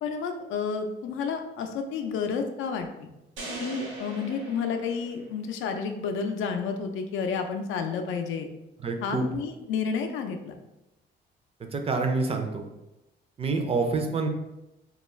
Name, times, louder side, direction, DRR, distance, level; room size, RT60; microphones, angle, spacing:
voice 1, 0.0-3.1 3.6-8.5 9.0-10.5, left 5 dB, 80° left, 5 dB, 0.4 m, -31 dB
sound 1, 3.4-5.7, right 2 dB, 75° right, 0.9 m, -39 dB
voice 2, 8.8-9.3 11.7-12.6 13.4-14.3, right 3 dB, 30° right, 4 dB, 0.4 m, -27 dB
2.3 x 2.3 x 3.1 m, 0.93 s
cardioid pair, 90°, 20 cm